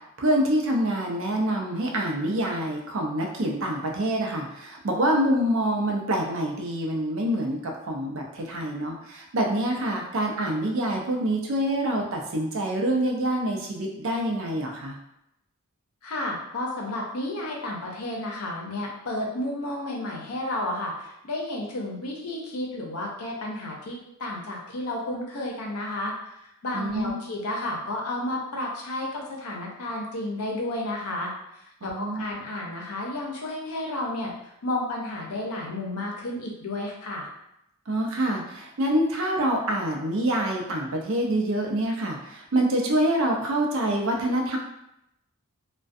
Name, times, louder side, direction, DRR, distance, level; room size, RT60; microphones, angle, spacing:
voice 1, 0.2-15.0 26.7-27.2 31.8-32.2 37.9-44.6, right 1 dB, 65° right, 1 dB, 0.5 m, -26 dB
voice 2, 16.0-26.1 26.6-31.3 31.8-34.3 34.6-37.3, left 1 dB, 85° left, -1 dB, 0.6 m, -32 dB
2.3 x 2.2 x 2.5 m, 0.82 s
head